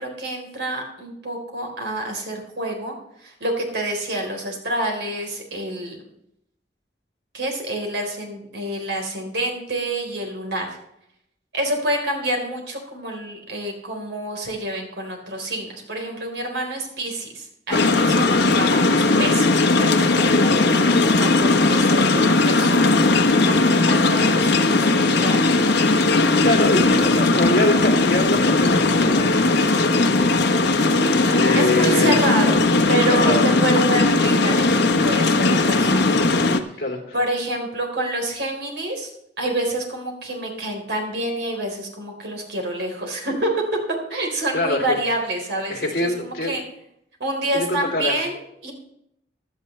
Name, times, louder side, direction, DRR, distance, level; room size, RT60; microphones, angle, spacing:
voice 1, 0.0-6.0 7.3-10.8 11.5-25.7 31.5-36.2 36.7-36.8 37.1-39.1 39.4-43.6 44.1-46.6 47.2-48.7, right 1 dB, 80° right, 2 dB, 4.0 m, -28 dB
sound 1, 17.7-36.6, left 3 dB, 70° left, 1.2 m, -18 dB
voice 2, 26.4-30.5 31.3-32.1 32.7-33.5 36.8-37.1 44.5-45.0 45.7-46.5 47.5-48.2, left 1 dB, 55° left, 2 dB, 3.0 m, -24 dB
16.0 x 12.0 x 3.3 m, 0.77 s
head